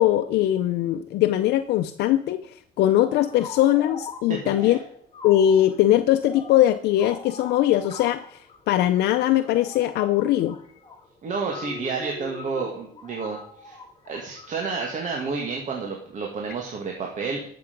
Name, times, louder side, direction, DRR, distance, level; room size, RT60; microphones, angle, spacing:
voice 1, 0.0-2.5 2.8-4.8 5.2-8.4 8.7-10.6, left 12 dB, 75° left, 8 dB, 0.7 m, -21 dB
sound 1, 3.0-14.9, left 4 dB, 30° left, 2.3 m, -42 dB
voice 2, 4.3-4.8 11.2-13.8 14.1-17.5, right 4 dB, 45° right, 1 dB, 2.1 m, -30 dB
12.5 x 6.9 x 5.3 m, 0.65 s
cardioid pair, 110°, 17 cm